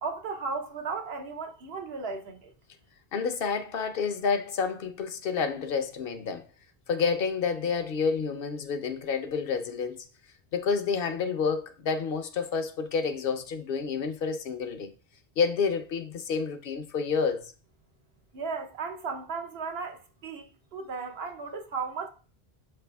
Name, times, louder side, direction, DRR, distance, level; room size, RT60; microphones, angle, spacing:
voice 1, 0.0-2.5 18.3-22.1, right 4 dB, 75° right, 1.0 m, -35 dB
voice 2, 3.1-6.4 6.9-10.1 10.5-14.9 15.4-17.5, left 5 dB, 65° left, 0.8 m, -29 dB
5.9 x 3.4 x 2.2 m
omnidirectional pair, 1.1 m